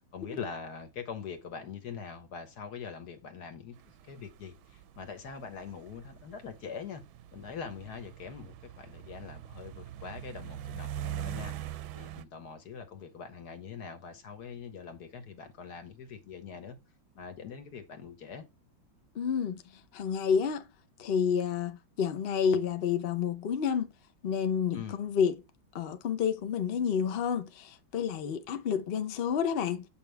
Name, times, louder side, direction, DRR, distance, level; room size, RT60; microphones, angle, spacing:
voice 1, 0.1-3.8 4.0-7.0 7.3-16.8 17.1-18.5 24.7-25.0, left 6 dB, 60° left, 1.6 m, -43 dB
sound 1, 3.8-12.2, right 11 dB, 90° right, 1.4 m, -42 dB
voice 2, 19.1-19.6 19.9-20.7 21.0-23.9 24.2-25.3 25.7-29.9, left 7 dB, 75° left, 0.5 m, -29 dB
7.4 x 5.4 x 3.4 m
omnidirectional pair, 2.1 m